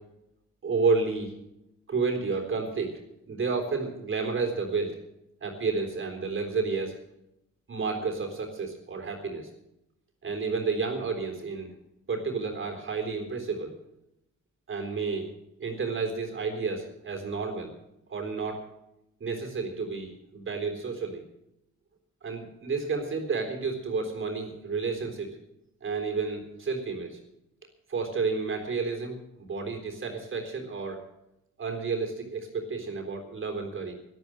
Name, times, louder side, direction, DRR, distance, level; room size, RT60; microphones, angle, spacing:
voice 1, 0.6-1.3 1.9-2.9 3.3-5.0 5.4-6.9 7.7-9.5 10.2-11.7 12.1-13.7 14.7-15.3 15.6-17.7 18.1-18.6 19.2-21.2 22.2-25.3 25.8-27.2 27.9-31.0 31.6-33.9, right 4 dB, 40° right, 3 dB, 3.8 m, -31 dB
12.5 x 12.5 x 7.8 m, 0.85 s
cardioid pair, 90°, 30 cm